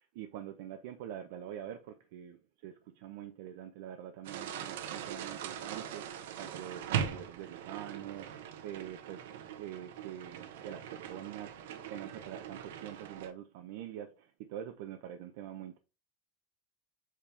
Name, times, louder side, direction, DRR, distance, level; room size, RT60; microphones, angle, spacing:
voice 1, 0.0-8.3 8.6-11.5 11.9-15.8, right 10 dB, 60° right, 0.7 m, -45 dB
sound 1, 4.2-13.3, right 8 dB, 85° right, 1.1 m, -41 dB
7.5 x 5.2 x 3.3 m
supercardioid pair, 175°, 0 cm